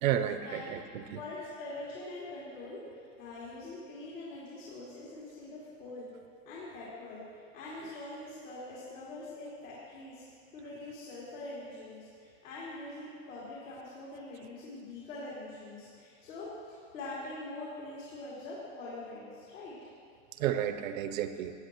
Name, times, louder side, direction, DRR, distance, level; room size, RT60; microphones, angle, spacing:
voice 1, 0.0-1.2 20.4-21.5, right 10 dB, 85° right, 10 dB, 0.9 m, -31 dB
voice 2, 1.1-6.1 6.4-10.2 10.5-19.8, left 2 dB, 70° left, -8 dB, 2.9 m, -44 dB
16.0 x 9.1 x 3.0 m, 2.3 s
supercardioid pair, 145°, 39 cm